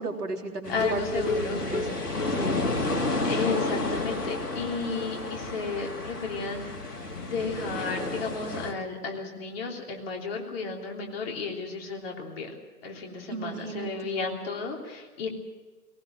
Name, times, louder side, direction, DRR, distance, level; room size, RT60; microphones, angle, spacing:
voice 1, 0.0-1.2 1.5-1.9 2.3-2.7 13.3-14.1, right 3 dB, 75° right, 2 dB, 3.7 m, -34 dB
sound 1, 0.6-8.7, left 2 dB, 80° left, 2.6 m, -31 dB
sound 2, 0.7-3.3 3.6-3.7 4.1-4.2 4.5-4.6, left 2 dB, 55° left, 2.4 m, -34 dB
voice 2, 0.7-1.6 3.2-6.6 7.2-12.5 12.8-15.3, left 4 dB, 40° left, 1 dB, 3.2 m, -33 dB
19.0 x 19.0 x 7.7 m, 1.3 s
figure-of-eight pair, 125°, 47 cm